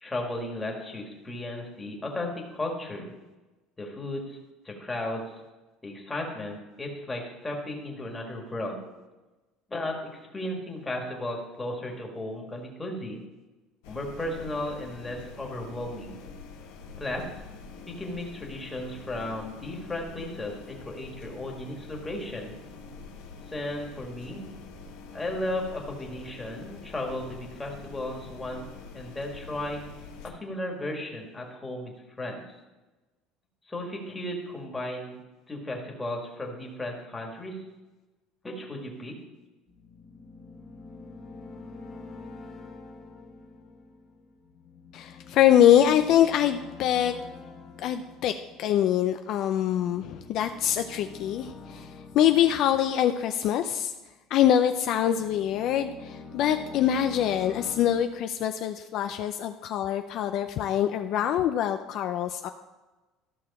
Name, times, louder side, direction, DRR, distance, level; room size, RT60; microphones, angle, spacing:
voice 1, 0.0-3.1 3.8-4.4 4.6-5.2 5.8-8.8 9.7-13.2 13.9-16.2 17.0-17.3 17.9-22.5 23.5-24.4 25.1-28.6 28.9-29.8 30.2-31.9 32.2-32.4 33.7-35.2 35.5-37.6 38.4-39.1, left 1 dB, 10° left, 0 dB, 1.9 m, -35 dB
sound 1, 13.8-30.3, left 4 dB, 85° left, 1.1 m, -45 dB
sound 2, 39.7-54.0 54.5-58.0, left 3 dB, 30° left, 1.5 m, -46 dB
voice 2, 44.9-47.1 47.8-53.9 54.3-62.5, left 10 dB, 55° left, 8 dB, 0.4 m, -24 dB
13.5 x 6.3 x 4.2 m, 1.1 s
cardioid pair, 145°, 0 cm